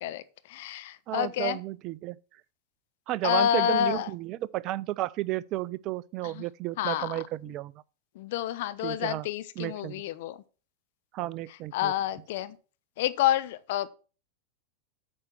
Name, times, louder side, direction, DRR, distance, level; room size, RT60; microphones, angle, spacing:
voice 1, 0.0-1.6 3.2-4.1 6.2-6.5 6.8-7.2 8.1-10.4 11.5-12.6 13.0-13.9, left 11 dB, 50° left, 0.6 m, -29 dB
voice 2, 1.1-2.2 3.1-7.7 8.8-9.3 9.6-10.0 11.1-11.9, right 15 dB, 40° right, 0.4 m, -32 dB
8.7 x 5.4 x 6.0 m
figure-of-eight pair, 90°, 0 cm